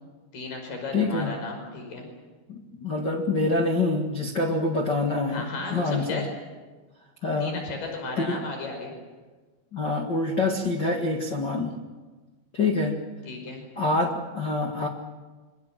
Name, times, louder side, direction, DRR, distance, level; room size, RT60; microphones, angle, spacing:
voice 1, 0.3-2.1 5.3-6.2 7.4-8.9 13.3-13.6, left 3 dB, 45° left, 3 dB, 6.9 m, -35 dB
voice 2, 0.9-1.3 2.5-6.2 7.2-7.6 8.2-8.4 9.7-11.7 12.5-13.0 13.8-14.9, left 2 dB, 90° left, 2 dB, 0.9 m, -26 dB
25.5 x 24.5 x 7.5 m, 1.3 s
omnidirectional pair, 5.5 m